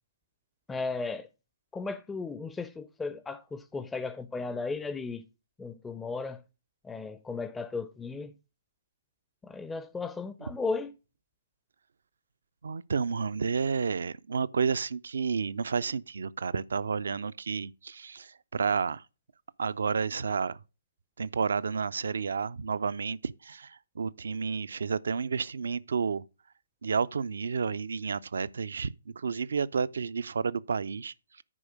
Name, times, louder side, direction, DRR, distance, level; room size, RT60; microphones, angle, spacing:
voice 1, 0.7-1.3 1.7-5.3 5.6-6.4 6.8-8.3 9.4-10.9, left 4 dB, 10° left, 0.5 m, -35 dB
voice 2, 12.6-19.0 19.6-20.6 21.2-26.2 26.8-31.4, right 5 dB, 65° right, 0.4 m, -31 dB
9.9 x 4.9 x 6.2 m
figure-of-eight pair, 125°, 0 cm